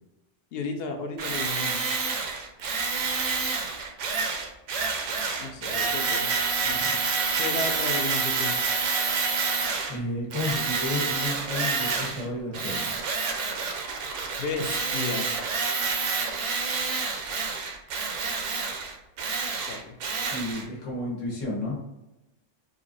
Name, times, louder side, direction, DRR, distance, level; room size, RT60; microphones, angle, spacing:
voice 1, 0.5-1.9 5.4-6.3 6.6-6.9 7.3-8.6 14.4-15.3 19.7-19.9, left 4 dB, 60° left, 5 dB, 0.7 m, -33 dB
Tools, 1.2-10.0 10.3-12.3 12.5-20.6, right 4 dB, 75° right, 0.9 m, -28 dB
voice 2, 9.9-12.9 20.3-21.8, left 2 dB, 80° left, -3 dB, 1.5 m, -32 dB
3.9 x 2.5 x 2.5 m, 0.95 s
omnidirectional pair, 1.3 m